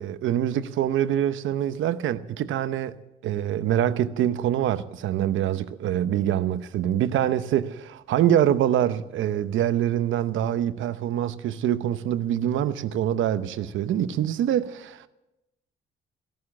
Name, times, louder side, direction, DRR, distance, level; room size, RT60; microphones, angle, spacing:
voice 1, 0.0-3.0 3.2-15.1, right 11 dB, 80° right, 0.9 m, -25 dB
14.0 x 13.0 x 7.3 m
cardioid pair, 90°, 20 cm